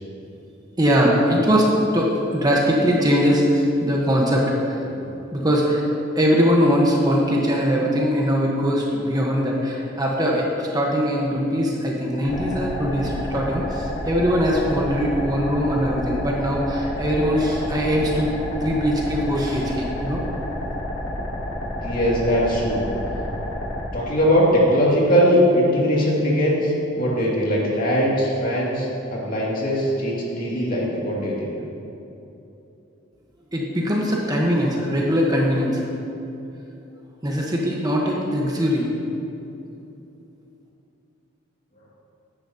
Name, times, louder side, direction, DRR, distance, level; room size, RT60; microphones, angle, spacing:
voice 1, 0.8-4.8 5.3-5.8 6.1-20.2 33.5-35.8 37.2-38.9, equal, 20° right, -2 dB, 1.1 m, -21 dB
sound 1, 12.2-23.8, left 1 dB, 90° left, 2.4 m, -30 dB
voice 2, 21.8-22.9 23.9-31.5, equal, 45° left, -5 dB, 2.4 m, -20 dB
14.5 x 10.0 x 2.9 m, 2.9 s
head